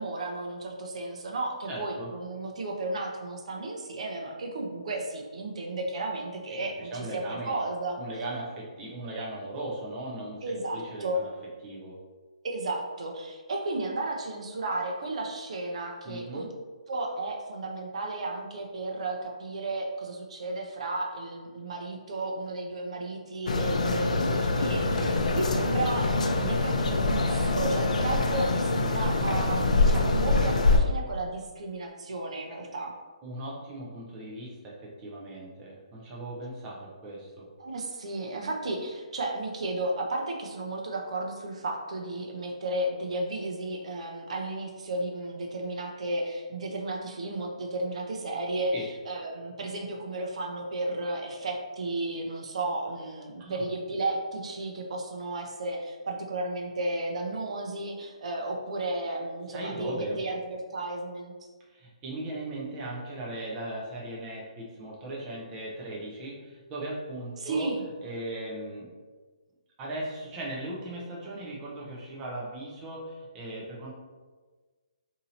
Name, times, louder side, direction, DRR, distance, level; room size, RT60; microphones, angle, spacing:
voice 1, 0.0-8.0 10.4-11.2 12.4-16.5 16.9-32.9 37.6-61.3 67.4-67.8, right 2 dB, 60° right, 1 dB, 0.6 m, -33 dB
voice 2, 1.7-2.1 6.5-7.6 8.0-11.3 11.6-12.0 16.0-16.5 25.0-25.2 33.2-37.5 48.7-48.9 53.4-53.6 59.5-60.2 61.7-67.7 68.0-68.9 69.8-73.9, right 1 dB, 20° right, -4 dB, 0.5 m, -38 dB
sound 1, 23.5-30.8, left 2 dB, 80° left, 0.5 m, -25 dB
2.7 x 2.7 x 4.1 m, 1.4 s
hypercardioid pair, 165°, 4 cm